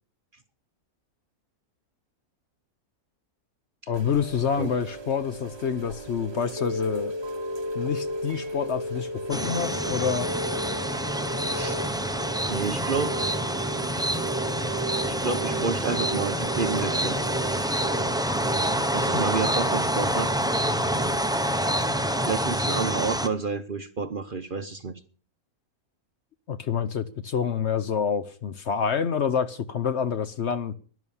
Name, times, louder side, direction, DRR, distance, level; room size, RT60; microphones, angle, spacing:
voice 1, 3.9-7.1 7.7-10.3 19.1-19.2 26.5-30.7, left 7 dB, 55° left, 1.0 m, -27 dB
Chime / Rain, 3.9-22.3, right 2 dB, 20° right, 0.9 m, -35 dB
sound 1, 9.3-23.3, equal, 5° right, 0.4 m, -27 dB
voice 2, 12.4-13.2 15.0-17.2 18.9-20.3 22.2-25.0, right 5 dB, 45° right, 0.8 m, -30 dB
12.5 x 11.0 x 7.2 m
omnidirectional pair, 1.6 m